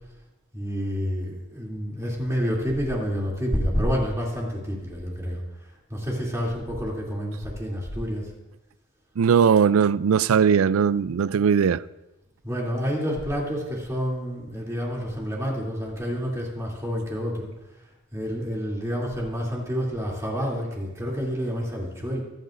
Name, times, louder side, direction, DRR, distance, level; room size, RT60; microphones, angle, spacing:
voice 1, 0.5-5.4 5.9-8.3 12.4-17.5 18.1-22.2, equal, 15° right, 2.8 m, -28 dB
voice 2, 9.2-11.8, right 7 dB, 85° right, 0.4 m, -19 dB
24.5 x 9.7 x 2.6 m
head